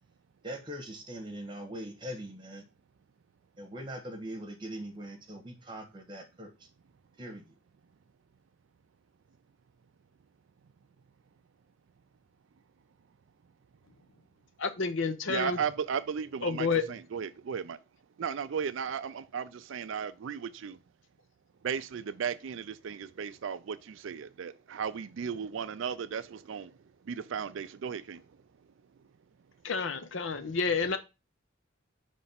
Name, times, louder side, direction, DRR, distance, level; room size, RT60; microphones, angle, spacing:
voice 1, 0.4-2.6 3.6-6.5 7.2-7.4, right 1 dB, 25° right, 1.3 m, -41 dB
voice 2, 14.6-15.6 16.4-16.8 29.6-31.0, left 5 dB, 65° left, 0.7 m, -29 dB
voice 3, 15.3-17.8 18.2-20.8 21.6-26.7 27.1-28.2, right 7 dB, 70° right, 0.4 m, -35 dB
5.3 x 3.4 x 5.6 m
head